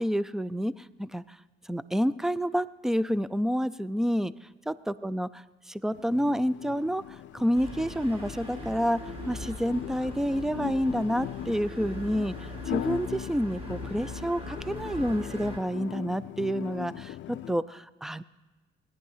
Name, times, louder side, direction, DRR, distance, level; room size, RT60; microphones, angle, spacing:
voice 1, 0.0-1.4 1.6-4.3 4.7-18.2, equal, ahead, 17 dB, 0.4 m, -29 dB
sound 1, 5.9-17.6, left 14 dB, 70° left, 0.4 m, -39 dB
sound 2, 7.5-15.6, equal, 30° right, 3.9 m, -41 dB
17.5 x 10.0 x 5.6 m, 1.2 s
cardioid pair, 90°, 20 cm